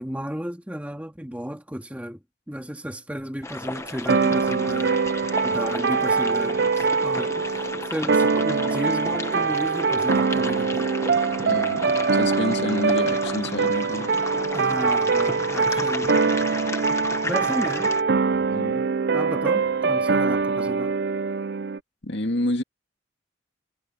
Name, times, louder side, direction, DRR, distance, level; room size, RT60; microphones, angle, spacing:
voice 1, 0.0-5.0 5.4-11.0 14.5-16.2 17.2-17.9 19.1-20.9, equal, 5° right, 2.1 m, -33 dB
sound 1, 3.4-18.0, left 2 dB, 15° left, 1.2 m, -34 dB
sound 2, 4.1-21.8, right 4 dB, 50° right, 0.5 m, -23 dB
voice 2, 11.4-14.1 16.0-16.1 18.5-18.9 22.0-22.6, left 1 dB, 60° left, 2.3 m, -29 dB
head